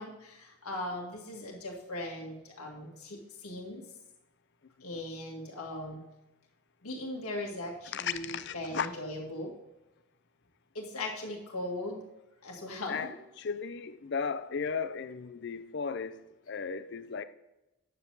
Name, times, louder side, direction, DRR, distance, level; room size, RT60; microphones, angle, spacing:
voice 1, 0.0-3.8 4.8-6.0 6.8-9.5 10.7-12.0 12.4-13.2, left 1 dB, 90° left, 1.9 m, -39 dB
voice 2, 7.9-8.9 12.9-16.2 16.5-17.2, left 6 dB, 55° left, 0.5 m, -35 dB
9.5 x 7.4 x 3.9 m
head